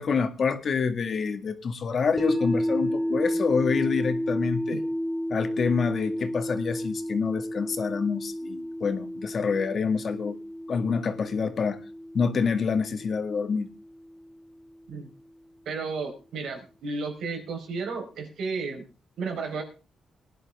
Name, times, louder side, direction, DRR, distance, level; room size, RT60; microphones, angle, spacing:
voice 1, 0.0-4.8 5.3-10.4 10.7-11.8 12.1-13.7, left 5 dB, 55° left, 8 dB, 2.0 m, -27 dB
sound 1, 2.2-14.3, equal, 5° right, 2.6 m, -31 dB
voice 2, 15.6-18.8 19.2-19.6, right 4 dB, 90° right, 3 dB, 4.6 m, -33 dB
20.0 x 10.5 x 3.6 m, 0.35 s
cardioid pair, 100°, 0 cm